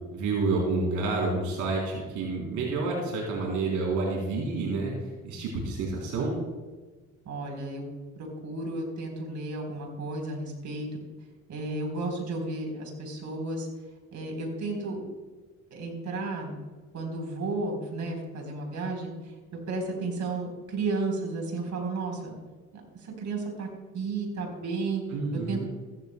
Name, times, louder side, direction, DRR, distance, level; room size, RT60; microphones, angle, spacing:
voice 1, 0.1-4.9 5.2-6.3 25.1-25.6, right 3 dB, 90° right, -2 dB, 3.4 m, -29 dB
voice 2, 7.3-7.8 8.4-10.9 11.5-13.7 14.1-15.1 15.7-16.6 16.9-22.3 22.9-23.7 23.9-25.7, right 3 dB, 65° right, 1 dB, 3.9 m, -33 dB
16.0 x 13.5 x 2.2 m, 1.3 s
cardioid pair, 90°, 30 cm